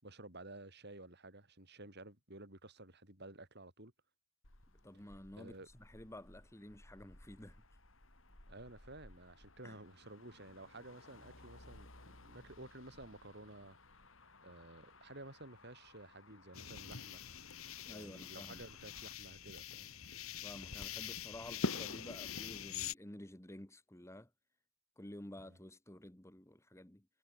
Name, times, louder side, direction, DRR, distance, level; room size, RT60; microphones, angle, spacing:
voice 1, 0.0-3.9 5.4-5.7 8.5-13.8 14.4-17.3 17.8-19.9 25.4-25.6, right 2 dB, 50° right, 7.6 m, -53 dB
Motor vehicle (road), 4.4-19.1, left 2 dB, 65° left, 4.7 m, -61 dB
voice 2, 4.8-7.6 9.6-9.8 17.9-18.6 20.4-24.3 25.0-27.1, left 1 dB, 15° left, 1.9 m, -52 dB
sound 1, 16.5-22.9, left 5 dB, 80° left, 2.2 m, -43 dB
head